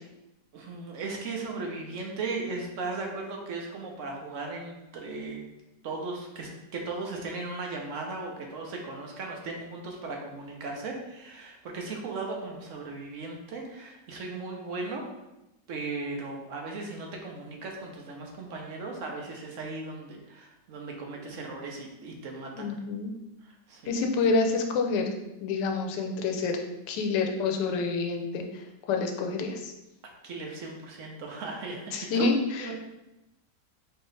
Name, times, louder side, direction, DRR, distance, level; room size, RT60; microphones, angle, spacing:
voice 1, 0.5-5.4 5.8-15.0 15.7-22.7 23.4-24.0 30.2-32.3 32.6-32.8, right 3 dB, 60° right, 0 dB, 0.8 m, -37 dB
voice 2, 22.6-23.1 23.9-25.1 25.4-26.6 26.9-29.7 31.9-32.7, left 4 dB, 80° left, 3 dB, 1.2 m, -28 dB
4.6 x 2.8 x 3.2 m, 0.94 s
omnidirectional pair, 1.9 m